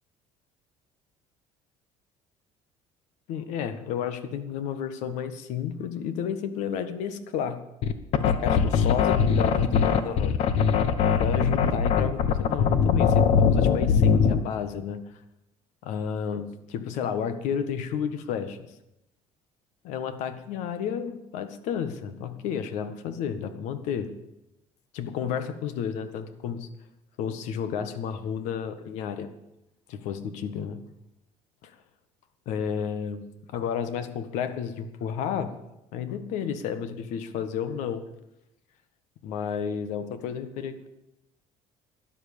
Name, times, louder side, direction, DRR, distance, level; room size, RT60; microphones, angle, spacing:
voice 1, 3.3-7.6 8.2-10.3 11.0-15.0 15.8-18.6 19.8-24.1 24.9-26.7 27.2-29.3 29.9-30.8 31.6-31.7 32.4-35.5 35.9-38.0 39.2-40.9, left 7 dB, 75° left, 11 dB, 1.6 m, -31 dB
sound 1, 7.8-14.5, left 6 dB, 60° left, 1.2 m, -21 dB
12.5 x 10.5 x 8.6 m, 0.90 s
cardioid pair, 155°, 12 cm